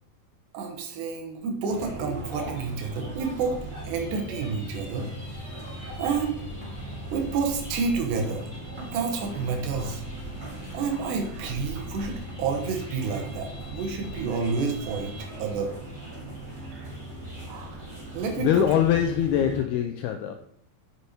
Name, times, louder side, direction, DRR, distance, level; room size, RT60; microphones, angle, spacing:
voice 1, 0.5-3.6 3.9-5.1 6.0-6.3 7.1-8.4 8.8-10.0 10.7-15.1 15.4-15.7 16.7-17.0 17.5-17.9 18.1-18.8, right 5 dB, 75° right, 3.3 m, -29 dB
sound 1, 1.7-19.6, right 1 dB, 25° right, 3.3 m, -38 dB
sound 2, 3.7-15.2, equal, 30° left, 1.2 m, -50 dB
voice 2, 18.4-20.3, left 10 dB, 85° left, 2.3 m, -23 dB
8.1 x 6.7 x 4.3 m
omnidirectional pair, 5.1 m